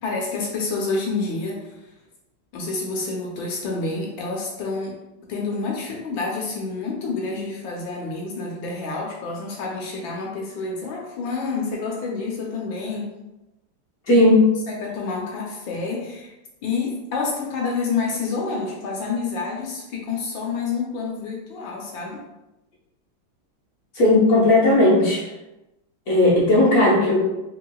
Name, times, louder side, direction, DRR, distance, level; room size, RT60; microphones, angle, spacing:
voice 1, 0.0-1.7 2.5-5.0 5.3-13.1 14.7-16.3 16.6-22.2, left 4 dB, 70° left, -2 dB, 1.4 m, -28 dB
voice 2, 14.1-14.5 23.9-25.3 26.1-27.2, left 2 dB, 50° left, -6 dB, 1.2 m, -16 dB
4.9 x 3.5 x 2.3 m, 0.98 s
omnidirectional pair, 2.3 m